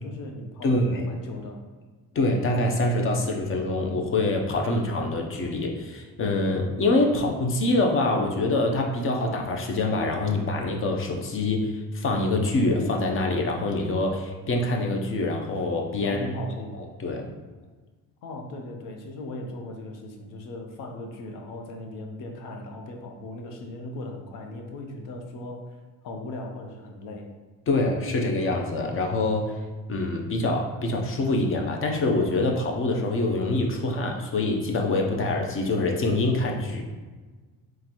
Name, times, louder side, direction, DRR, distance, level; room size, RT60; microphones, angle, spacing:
voice 1, 0.0-1.6 16.0-16.8 18.2-27.3, left 1 dB, 70° left, 3 dB, 0.8 m, -38 dB
voice 2, 0.6-1.1 2.1-16.2 17.0-17.3 27.7-29.6 29.9-36.8, left 2 dB, 40° left, 2 dB, 0.6 m, -25 dB
3.9 x 3.1 x 2.9 m, 1.3 s
cardioid pair, 110°, 33 cm